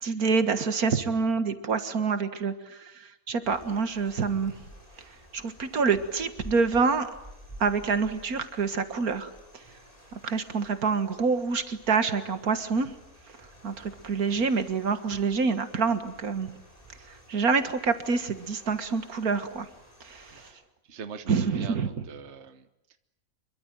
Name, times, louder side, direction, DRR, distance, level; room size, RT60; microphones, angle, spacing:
voice 1, 0.0-4.5 5.3-7.1 7.6-9.3 10.1-12.9 13.6-16.5 17.1-19.7 20.0-20.4 21.3-21.9, right 5 dB, 85° right, 10 dB, 2.1 m, -27 dB
sound 1, 3.4-20.5, equal, 25° left, 7.1 m, -51 dB
voice 2, 20.9-22.7, right 6 dB, 50° right, 10 dB, 1.5 m, -42 dB
26.0 x 23.5 x 9.0 m, 0.89 s
omnidirectional pair, 1.5 m